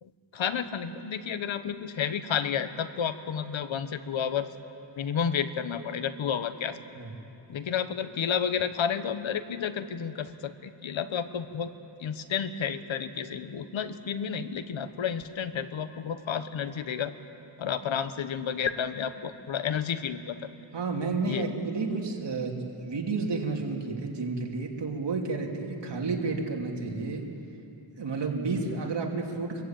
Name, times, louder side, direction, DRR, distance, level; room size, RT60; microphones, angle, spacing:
voice 1, 0.0-4.5 5.0-6.8 7.5-11.7 12.0-17.1 17.6-20.5 21.2-21.4, left 7 dB, 75° left, 11 dB, 1.1 m, -31 dB
voice 2, 20.7-27.2 28.0-29.6, right 3 dB, 60° right, 1 dB, 3.0 m, -31 dB
25.5 x 15.0 x 8.9 m, 2.9 s
cardioid pair, 75°, 47 cm